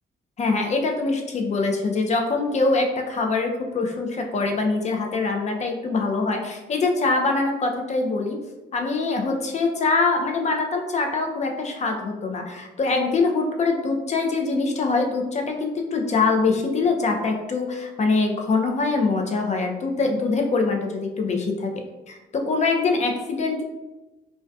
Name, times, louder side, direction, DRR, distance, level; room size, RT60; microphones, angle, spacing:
voice 1, 0.4-8.4 8.7-21.7 22.1-23.6, left 3 dB, 35° left, 3 dB, 0.4 m, -23 dB
2.5 x 2.2 x 2.2 m, 1.1 s
cardioid pair, 90°, 20 cm